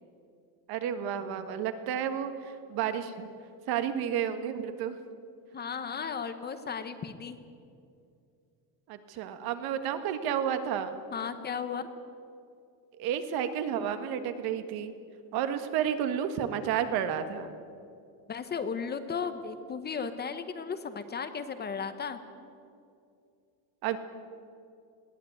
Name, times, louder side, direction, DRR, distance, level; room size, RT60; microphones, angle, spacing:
voice 1, 0.7-3.3 3.7-5.0 8.9-11.0 13.0-14.9 15.3-17.6 23.8-24.0, right 9 dB, 55° right, 9 dB, 1.8 m, -31 dB
voice 2, 5.5-7.4 11.1-11.8 18.3-22.2, left 6 dB, 20° left, 10 dB, 1.0 m, -35 dB
20.5 x 17.5 x 9.3 m, 2.4 s
cardioid pair, 165°, 44 cm